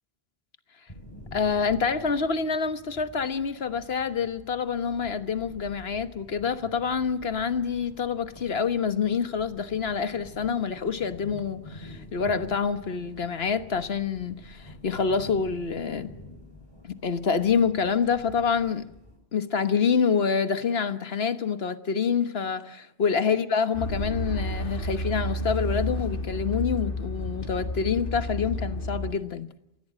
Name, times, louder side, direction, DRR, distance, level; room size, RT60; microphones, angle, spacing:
sound 1, 0.9-19.2, left 1 dB, 25° left, 6.5 m, -47 dB
voice 1, 1.3-16.1 16.8-18.9 19.3-29.5, left 6 dB, 70° left, 1.5 m, -27 dB
sound 2, 23.7-29.1, left 1 dB, 55° left, 3.2 m, -31 dB
29.5 x 16.0 x 7.5 m
omnidirectional pair, 1.1 m